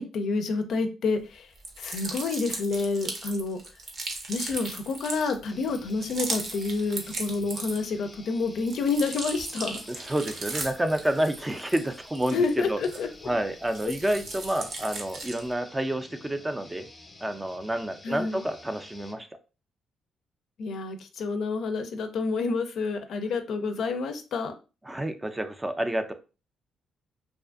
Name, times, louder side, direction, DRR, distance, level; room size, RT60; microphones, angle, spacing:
voice 1, 0.0-1.5 1.8-3.6 4.3-9.8 12.3-13.1 18.0-18.4 20.6-24.5, left 4 dB, 70° left, 7 dB, 0.4 m, -29 dB
sound 1, 1.6-8.0 8.4-13.3 13.6-15.5, right 3 dB, 55° right, 0.7 m, -37 dB
sound 2, 5.5-19.2, left 2 dB, 20° left, 0.6 m, -50 dB
voice 2, 9.9-12.4 12.7-12.8 13.2-16.9 17.2-19.3 24.9-26.1, right 1 dB, 15° right, 8 dB, 0.3 m, -29 dB
2.4 x 2.4 x 2.4 m, 0.32 s
cardioid pair, 90°, 0 cm